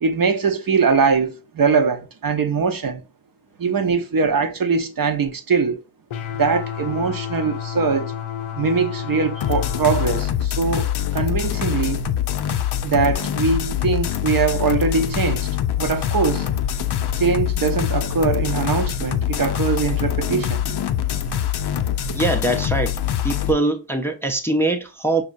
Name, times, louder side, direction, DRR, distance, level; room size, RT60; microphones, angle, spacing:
voice 1, 0.0-3.0 3.6-5.8 6.4-8.1 8.5-12.0 12.8-15.5 15.8-16.5 17.2-20.7, right 5 dB, 45° right, 0.7 m, -22 dB
sound 1, 6.1-10.2, left 9 dB, 90° left, 0.7 m, -30 dB
sound 2, 9.4-23.5, left 10 dB, 55° left, 0.5 m, -24 dB
voice 2, 22.1-22.9 23.2-25.2, right 2 dB, 5° left, 0.5 m, -22 dB
5.2 x 2.8 x 2.5 m
cardioid pair, 70°, 47 cm